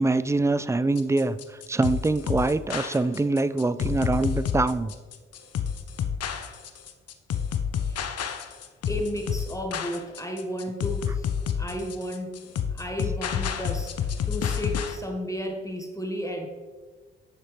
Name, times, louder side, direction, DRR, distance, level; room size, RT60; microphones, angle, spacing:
voice 1, 0.0-1.4 1.7-4.9, right 2 dB, 10° right, 14 dB, 0.4 m, -24 dB
sound 1, 1.0-15.0, left 7 dB, 55° left, 0.8 m, -29 dB
voice 2, 8.9-11.3 11.6-16.5, equal, 10° left, 2 dB, 1.5 m, -33 dB
9.9 x 6.8 x 3.4 m, 1.4 s
hypercardioid pair, 40°, 30 cm